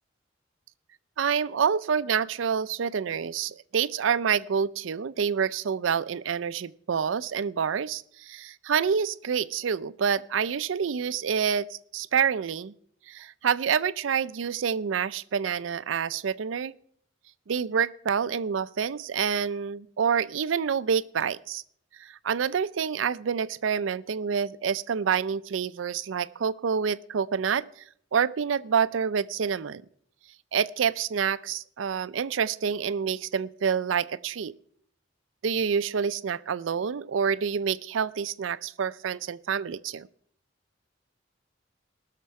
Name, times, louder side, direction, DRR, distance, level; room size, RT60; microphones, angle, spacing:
voice 1, 1.2-12.7 13.1-16.7 17.5-21.6 22.0-27.7 28.1-29.8 30.5-34.5 35.4-40.1, right 7 dB, 75° right, 17 dB, 0.4 m, -27 dB
19.5 x 6.7 x 4.7 m, 0.64 s
head